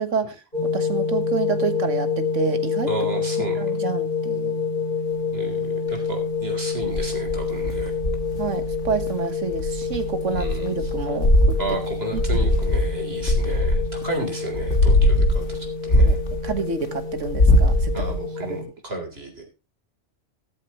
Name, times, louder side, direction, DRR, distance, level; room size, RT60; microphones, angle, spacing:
voice 1, 0.0-2.9 3.5-4.6 8.4-11.8 12.1-12.4 16.0-16.2 16.4-18.0 18.4-18.6, right 6 dB, 90° right, 1.8 m, -29 dB
sound 1, 0.5-18.6, left 5 dB, 45° left, 4.3 m, -28 dB
voice 2, 2.9-3.7 5.3-7.9 10.3-10.9 11.6-16.2 17.9-19.4, right 2 dB, 55° right, 3.9 m, -32 dB
sound 2, 6.8-9.1 9.5-14.1 14.5-16.8 17.2-18.1, left 1 dB, 75° left, 2.7 m, -20 dB
13.5 x 13.5 x 3.0 m
omnidirectional pair, 1.2 m